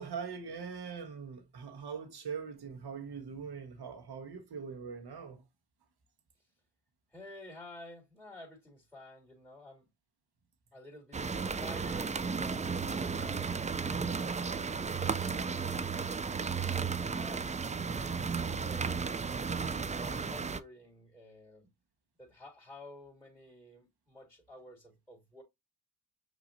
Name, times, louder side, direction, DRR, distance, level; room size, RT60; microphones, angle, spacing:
voice 1, 0.0-5.4, right 6 dB, 60° right, 1.3 m, -42 dB
voice 2, 7.1-9.9 10.7-13.5 13.8-19.2 19.8-21.7 22.2-25.4, left 1 dB, ahead, 3.0 m, -52 dB
sound 1, 11.1-20.6, right 5 dB, 20° right, 0.4 m, -34 dB
6.0 x 3.0 x 2.6 m
cardioid pair, 55°, 43 cm